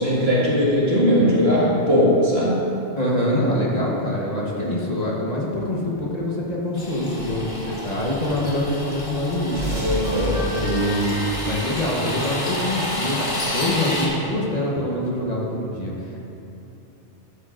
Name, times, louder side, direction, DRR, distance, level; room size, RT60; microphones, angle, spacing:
voice 1, 0.0-2.6 9.8-10.4, equal, 65° right, -7 dB, 2.1 m, -19 dB
voice 2, 3.0-9.8 10.5-11.2 11.5-16.2, left 1 dB, 35° left, -4 dB, 1.2 m, -25 dB
sound 1, 6.8-14.1, left 1 dB, 65° left, 1.8 m, -30 dB
sound 2, 9.5-13.0, right 1 dB, 45° right, 2.2 m, -31 dB
12.0 x 9.1 x 2.5 m, 2.9 s
omnidirectional pair, 1.2 m